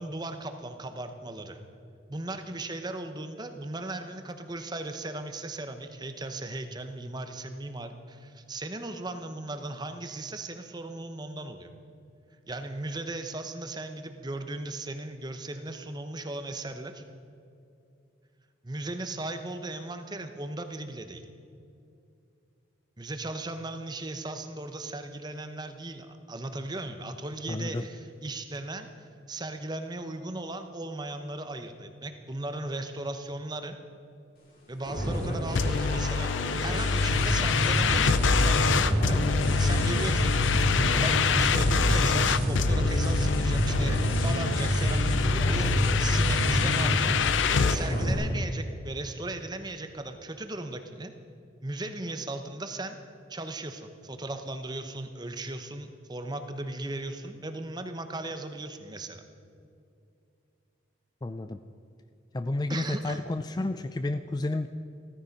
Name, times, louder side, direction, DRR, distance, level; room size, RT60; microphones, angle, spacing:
voice 1, 0.0-1.6 2.1-11.7 12.5-17.0 18.6-21.2 23.0-33.8 34.7-36.3 36.6-40.4 41.0-47.1 47.7-51.1 51.6-53.0 53.3-59.2 62.7-63.2, right 2 dB, 20° right, 7 dB, 0.9 m, -37 dB
voice 2, 27.5-27.9 61.2-61.6 62.3-64.7, left 2 dB, 20° left, 10 dB, 0.3 m, -31 dB
sound 1, 34.8-48.1, equal, 45° left, 4.2 m, -28 dB
sound 2, 35.6-47.8, left 5 dB, 75° left, 0.6 m, -26 dB
16.0 x 14.0 x 5.3 m, 2.5 s
head